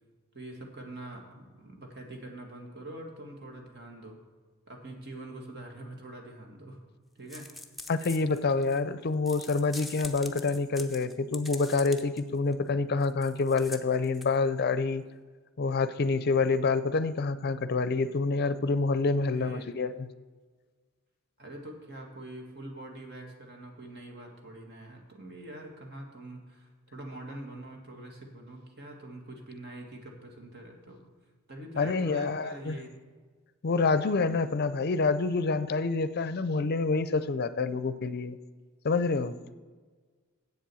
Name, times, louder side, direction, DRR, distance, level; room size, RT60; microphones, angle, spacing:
voice 1, 0.3-4.2 4.7-6.8 7.2-7.5 19.1-19.7 21.4-31.0 31.5-32.9, right 1 dB, 55° right, 2 dB, 1.9 m, -44 dB
sound 1, 7.3-8.8 9.3-12.2 12.5-12.6 13.0-14.4, left 2 dB, ahead, 0.6 m, -44 dB
voice 2, 7.9-15.0 15.6-20.1 31.7-32.8 33.6-38.4 38.8-39.4, left 4 dB, 50° left, 14 dB, 0.5 m, -27 dB
8.0 x 7.6 x 6.9 m, 1.5 s
head